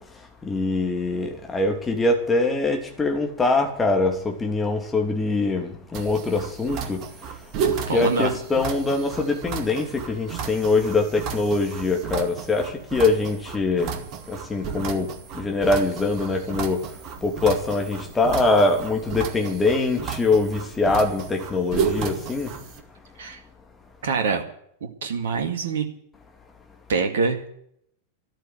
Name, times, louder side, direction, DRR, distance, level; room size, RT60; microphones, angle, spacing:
voice 1, 0.4-7.0 7.9-14.0 14.3-15.1 15.3-16.8 17.2-22.5, left 3 dB, 15° left, 3.0 m, -23 dB
sound 1, 5.9-22.8, right 6 dB, 40° right, 2.1 m, -33 dB
voice 2, 7.9-8.3 23.2-23.4 24.0-24.5 25.0-25.9 26.9-27.5, right 5 dB, 60° right, 2.1 m, -24 dB
13.5 x 12.5 x 8.2 m
figure-of-eight pair, 90°, 0 cm